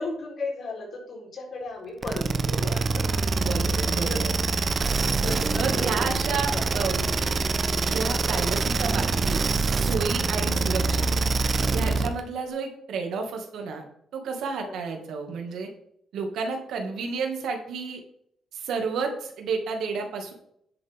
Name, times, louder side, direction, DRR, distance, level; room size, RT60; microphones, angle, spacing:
voice 1, 0.0-3.1 3.6-3.8 4.1-4.2 5.2-7.1 14.6-14.8, left 2 dB, 55° left, -1 dB, 4.2 m, -36 dB
sound 1, 2.0-12.2, right 3 dB, 40° right, 0.9 m, -25 dB
voice 2, 3.4-4.3 5.5-7.1 7.8-9.4 9.7-11.1 11.7-13.8 14.1-15.7 16.1-18.0 18.5-20.3, right 5 dB, 75° right, 3 dB, 2.2 m, -31 dB
10.5 x 8.0 x 3.7 m, 0.69 s
cardioid pair, 90°, 0 cm